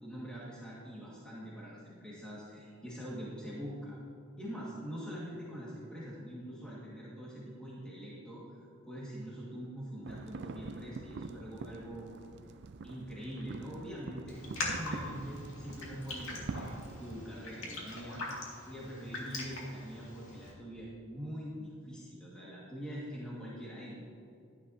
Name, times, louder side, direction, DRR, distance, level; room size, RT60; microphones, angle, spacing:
voice 1, 0.0-4.0 4.4-12.1 12.8-14.4 14.7-16.7 17.0-18.2 18.6-24.0, equal, 5° left, -8 dB, 1.8 m, -44 dB
sound 1, 10.0-17.3, right 3 dB, 55° right, 0.4 m, -45 dB
Raindrop, 14.3-20.5, left 2 dB, 90° left, 2.2 m, -42 dB
12.5 x 10.5 x 2.8 m, 2.5 s
head